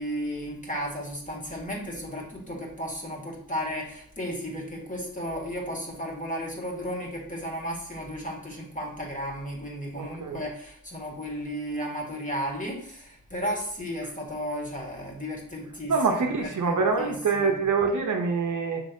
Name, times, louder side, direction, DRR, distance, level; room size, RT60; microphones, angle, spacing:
voice 1, 0.0-17.5, equal, 20° left, -2 dB, 1.7 m, -34 dB
voice 2, 9.9-10.4 15.9-18.8, right 4 dB, 55° right, 2 dB, 0.8 m, -25 dB
6.0 x 3.3 x 2.7 m, 0.64 s
cardioid pair, 60°, 37 cm